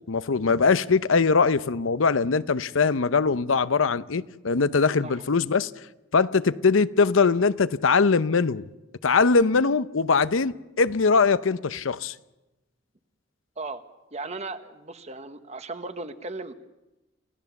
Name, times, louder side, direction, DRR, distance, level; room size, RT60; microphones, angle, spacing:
voice 1, 0.1-5.7 6.1-8.7 9.0-12.1, left 4 dB, 90° left, 0.7 m, -22 dB
voice 2, 14.1-16.5, right 3 dB, 35° right, 1.1 m, -36 dB
29.5 x 16.5 x 7.1 m
head